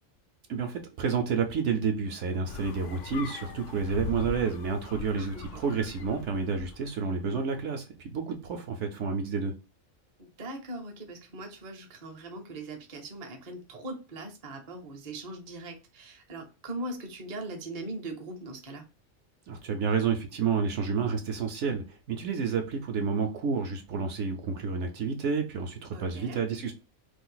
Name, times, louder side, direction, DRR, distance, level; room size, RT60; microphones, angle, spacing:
voice 1, 0.5-9.5 19.5-26.7, right 5 dB, 70° right, 0.9 m, -30 dB
sound 1, 2.5-7.0, left 5 dB, 70° left, 0.9 m, -40 dB
voice 2, 5.2-5.6 10.2-18.8 25.9-26.4, right 2 dB, 40° right, 0.6 m, -40 dB
2.6 x 2.4 x 3.8 m
omnidirectional pair, 1.4 m